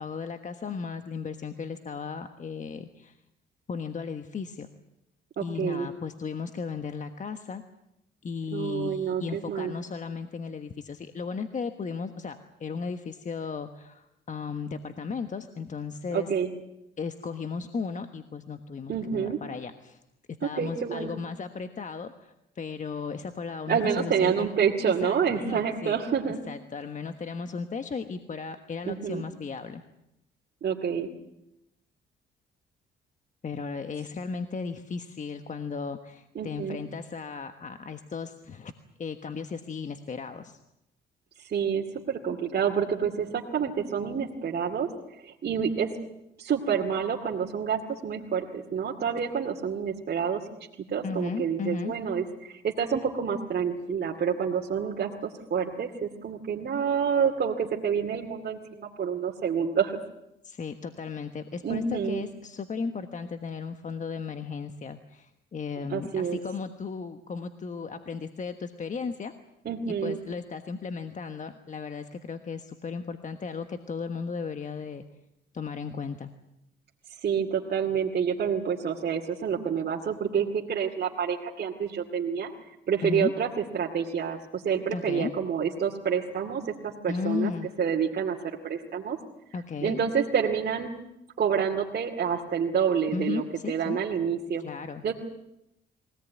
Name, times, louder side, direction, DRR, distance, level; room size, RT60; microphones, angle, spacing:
voice 1, 0.0-3.2 3.7-4.7 5.4-7.6 8.2-16.3 17.0-20.0 20.4-24.3 24.9-26.0 26.5-29.8 33.4-38.7 39.0-40.6 51.0-51.9 60.4-69.3 69.9-75.0 75.5-76.3 83.0-83.3 84.9-85.3 87.1-87.7 89.5-90.0 93.1-94.0 94.6-95.1, left 5 dB, 40° left, 8 dB, 1.3 m, -35 dB
voice 2, 5.4-5.9 8.5-9.7 16.1-16.5 18.9-19.4 20.5-21.1 23.7-26.4 28.9-29.2 30.6-31.1 36.4-36.8 41.4-44.9 45.2-45.9 46.4-50.4 50.9-59.9 61.6-62.2 65.9-66.4 69.6-70.2 77.2-82.5 82.9-83.5 83.7-87.5 87.8-88.4 88.6-89.2 89.8-90.9 91.4-94.6 95.0-95.1, right 7 dB, 50° right, -1 dB, 2.4 m, -28 dB
22.5 x 18.0 x 9.4 m, 0.86 s
cardioid pair, 90°, 20 cm